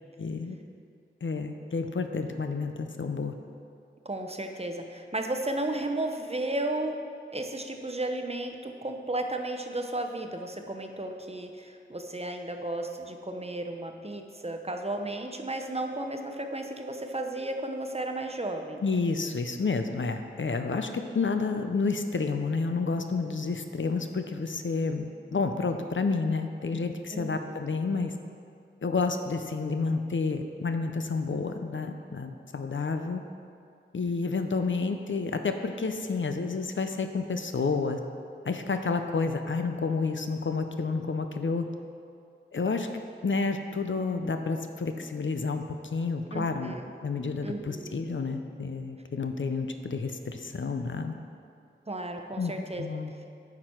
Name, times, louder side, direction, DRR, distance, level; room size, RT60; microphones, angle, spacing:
voice 1, 0.2-0.6 1.2-3.3 18.8-28.1 28.8-33.2 33.9-38.0 38.5-41.6 42.5-42.9 43.2-46.7 47.0-51.1 52.4-52.5 52.8-53.1, left 4 dB, 70° left, 6 dB, 0.6 m, -30 dB
voice 2, 4.0-7.0 7.3-18.8 27.1-27.6 46.3-46.9 47.4-47.9 51.9-52.9, right 1 dB, 30° right, 4 dB, 0.7 m, -34 dB
9.7 x 6.1 x 4.5 m, 2.4 s
wide cardioid pair, 50°, 20 cm